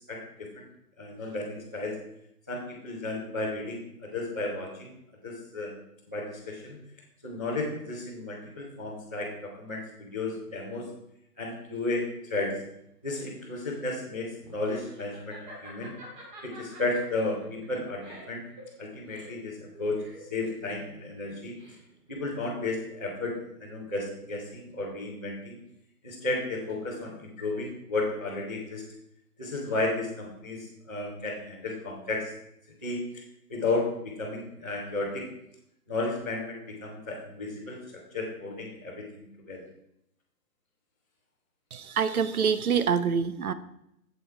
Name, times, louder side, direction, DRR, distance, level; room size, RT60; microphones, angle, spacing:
voice 1, 0.1-0.7 1.0-2.0 2.5-4.9 5.2-5.7 6.1-6.8 7.2-10.9 11.4-12.6 13.0-15.9 16.4-18.4 18.8-20.0 20.3-21.6 22.1-25.6 26.0-28.8 29.4-32.3 32.8-33.0 33.5-35.2 35.9-39.6, left 2 dB, 10° left, -11 dB, 0.6 m, -33 dB
Laughter, 12.7-22.1, equal, 30° right, 3.2 m, -49 dB
voice 2, 41.7-43.5, right 6 dB, 65° right, 13 dB, 0.9 m, -26 dB
8.6 x 7.9 x 4.6 m, 0.77 s
hypercardioid pair, 160°, 48 cm